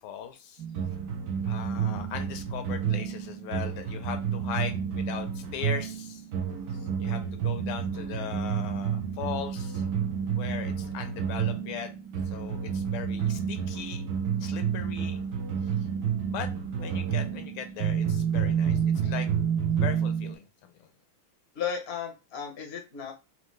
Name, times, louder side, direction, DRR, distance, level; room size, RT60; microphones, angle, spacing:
voice 1, 0.0-0.6 1.4-6.2 7.0-9.8 10.3-11.9 12.3-14.1 14.4-15.2 16.3-16.5 16.8-19.3 19.8-20.9, left 8 dB, 80° left, 7 dB, 1.4 m, -39 dB
sound 1, 0.6-20.3, right 7 dB, 65° right, 1.0 m, -30 dB
voice 2, 21.5-23.1, left 7 dB, 55° left, 3 dB, 0.6 m, -34 dB
4.3 x 2.6 x 3.1 m, 0.28 s
omnidirectional pair, 2.3 m